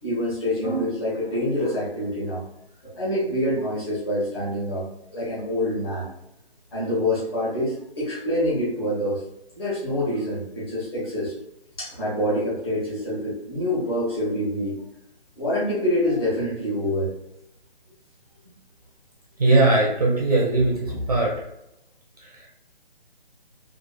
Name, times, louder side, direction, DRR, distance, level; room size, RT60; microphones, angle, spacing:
voice 1, 0.0-2.4 2.8-4.8 5.1-6.1 6.7-9.2 9.5-11.3 11.8-14.8 15.4-17.1, left 1 dB, 25° left, -10 dB, 1.2 m, -26 dB
voice 2, 19.4-21.3 22.2-22.3, right 2 dB, 40° right, -3 dB, 0.5 m, -20 dB
3.0 x 2.4 x 2.2 m, 0.84 s
hypercardioid pair, 165°, 30 cm